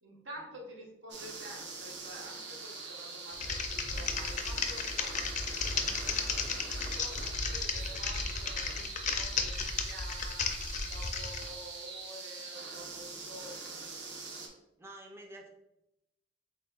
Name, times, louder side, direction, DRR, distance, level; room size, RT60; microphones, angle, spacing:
voice 1, 0.0-10.5 10.8-13.9, equal, 80° right, -1 dB, 1.0 m, -50 dB
sound 1, 1.1-14.5, right 4 dB, 65° right, 0.8 m, -43 dB
Typing, 3.3-11.5, left 5 dB, 40° left, 0.4 m, -34 dB
voice 2, 14.8-15.5, right 1 dB, 15° right, 0 dB, 0.4 m, -48 dB
5.2 x 3.4 x 2.3 m, 0.88 s
head